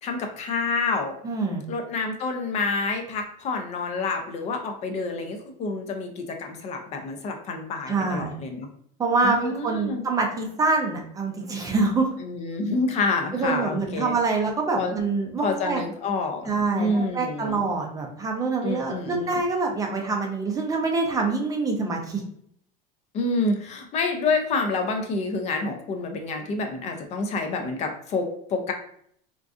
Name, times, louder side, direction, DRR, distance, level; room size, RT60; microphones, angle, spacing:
voice 1, 0.0-1.2 1.7-8.7 9.2-10.0 12.2-14.1 14.7-14.9 15.4-16.5 16.8-17.6 18.6-19.4 23.1-28.7, left 3 dB, 35° left, 4 dB, 0.5 m, -28 dB
voice 2, 1.2-1.6 7.9-8.3 9.0-12.1 13.3-15.8 16.5-22.2, right 3 dB, 20° right, 2 dB, 0.5 m, -25 dB
3.7 x 2.5 x 2.4 m, 0.66 s
supercardioid pair, 140°, 19 cm